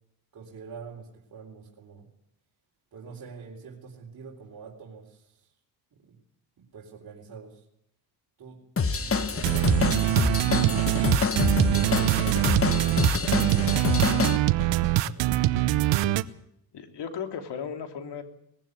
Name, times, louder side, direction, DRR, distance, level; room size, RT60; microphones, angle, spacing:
voice 1, 0.3-2.1 2.9-5.5 5.9-6.2 6.6-7.6 8.4-8.6 8.9-9.6 10.0-12.6 13.1-15.5, right 5 dB, 50° right, -3 dB, 4.0 m, -45 dB
Drum kit / Drum, 8.8-14.4, left 5 dB, 30° left, 1.4 m, -26 dB
sound 1, 9.4-16.2, right 15 dB, 80° right, 0.9 m, -23 dB
sound 2, 14.3-14.4, right 3 dB, 25° right, 4.2 m, -40 dB
voice 2, 16.7-18.2, left 7 dB, 65° left, 5 dB, 3.2 m, -35 dB
20.0 x 15.5 x 9.7 m, 0.76 s
cardioid pair, 85°, 43 cm